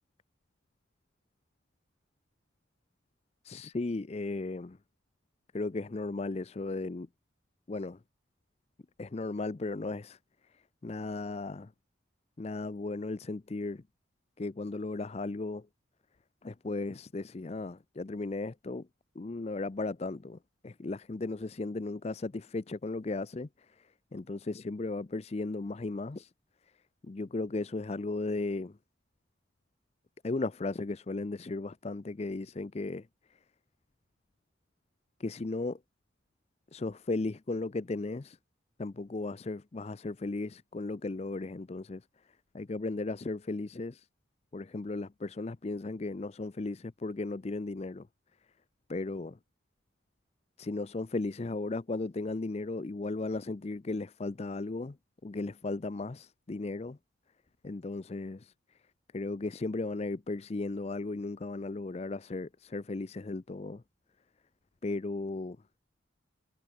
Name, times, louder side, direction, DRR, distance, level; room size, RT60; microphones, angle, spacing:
voice 1, 3.4-4.8 5.5-7.1 7.7-8.0 9.0-10.2 10.5-11.7 12.4-13.8 14.4-15.7 16.4-18.9 19.2-20.4 20.6-26.3 27.0-28.8 30.2-33.4 35.2-35.8 36.7-38.4 38.8-42.1 42.5-44.1 44.5-48.1 48.9-49.4 50.6-55.0 55.2-57.0 57.6-58.5 59.1-63.8 64.8-65.6, left 2 dB, 30° left, 0.4 m, -36 dB
head